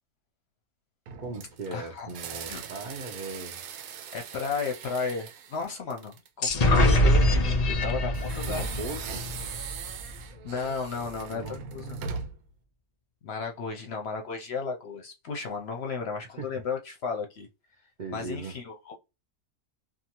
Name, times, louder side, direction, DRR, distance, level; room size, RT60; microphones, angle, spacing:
sound 1, 1.1-6.4 8.1-12.5, right 6 dB, 75° right, 1.0 m, -40 dB
voice 1, 1.2-3.6 8.4-9.3 11.3-11.6 16.4-16.5 18.0-18.5, right 3 dB, 55° right, 0.5 m, -38 dB
voice 2, 1.7-2.1 2.5-2.6 4.1-8.9 10.4-12.0 13.2-17.5 18.1-19.0, left 4 dB, 60° left, 0.8 m, -34 dB
sound 2, 6.4-10.1, left 1 dB, 90° left, 0.3 m, -24 dB
2.7 x 2.4 x 2.8 m
omnidirectional pair, 1.5 m